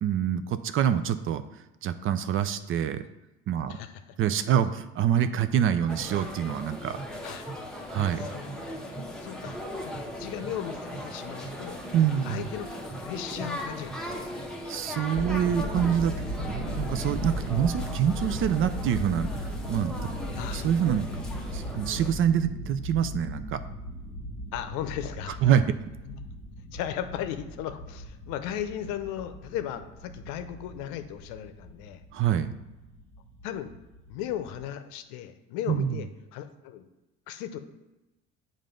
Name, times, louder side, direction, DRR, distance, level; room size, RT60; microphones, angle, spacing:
voice 1, 0.0-1.4 1.8-3.0 3.5-3.8 4.2-7.0 7.9-8.3 11.9-12.5 14.7-20.1 20.5-21.1 21.4-23.6 25.3-25.6 32.1-32.5 35.7-36.0, right 9 dB, 45° right, 11 dB, 0.4 m, -26 dB
sound 1, 5.9-22.1, equal, ahead, 0.9 m, -38 dB
voice 2, 8.3-8.7 9.2-9.9 10.2-11.8 12.2-12.7 13.0-14.5 20.4-20.7 24.5-25.5 26.1-26.2 26.7-32.0 33.4-33.7 34.1-36.9 37.3-37.6, left 10 dB, 80° left, 9 dB, 0.6 m, -36 dB
sound 2, 15.1-34.6, equal, 25° left, 1.5 m, -37 dB
7.6 x 2.6 x 5.1 m, 1.0 s
cardioid pair, 105°, 30 cm